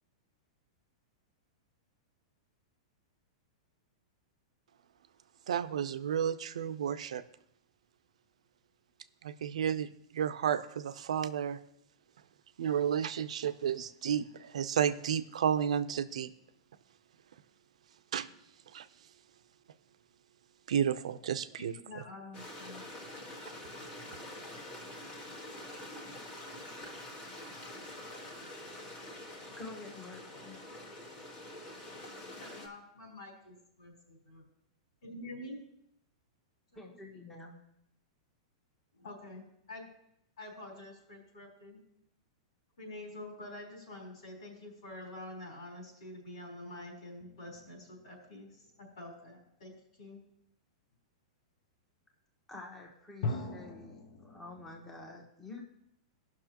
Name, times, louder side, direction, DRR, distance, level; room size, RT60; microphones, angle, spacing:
voice 1, 5.5-7.2 9.2-9.9 10.1-11.6 12.6-16.3 18.1-18.3 18.7-18.9 20.7-21.7, right 8 dB, 85° right, 12 dB, 0.6 m, -32 dB
voice 2, 21.5-22.8 31.9-32.0 32.4-34.4 35.0-35.6 36.7-37.1 38.9-39.9 40.4-41.8 42.8-50.2, left 1 dB, 80° left, -2 dB, 4.0 m, -47 dB
Stream, 22.3-32.7, left 1 dB, 25° left, 1.5 m, -46 dB
voice 3, 29.6-30.6 36.7-37.6 52.5-55.6, left 2 dB, 10° left, 0 dB, 1.3 m, -48 dB
sound 1, 47.2-48.5 53.2-55.1, left 3 dB, 50° left, 1.0 m, -41 dB
16.0 x 6.1 x 3.0 m, 0.76 s
supercardioid pair, 155°, 3 cm